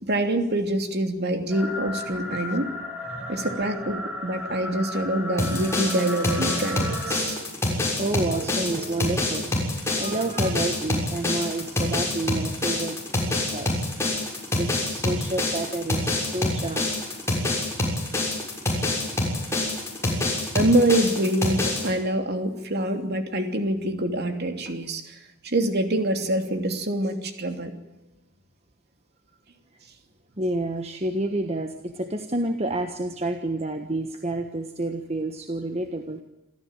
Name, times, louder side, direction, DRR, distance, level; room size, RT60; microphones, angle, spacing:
voice 1, 0.0-2.7 3.3-7.4 20.5-27.7, right 1 dB, 50° right, 6 dB, 2.9 m, -25 dB
sound 1, 1.5-7.2, left 1 dB, 5° right, 5.9 m, -34 dB
sound 2, 5.4-21.9, left 2 dB, 10° left, 6.7 m, -26 dB
voice 2, 6.8-7.5 8.0-13.0 13.3-13.9 14.5-17.1 30.4-36.2, right 2 dB, 30° right, 6 dB, 1.4 m, -30 dB
27.5 x 14.5 x 9.1 m, 1.0 s
head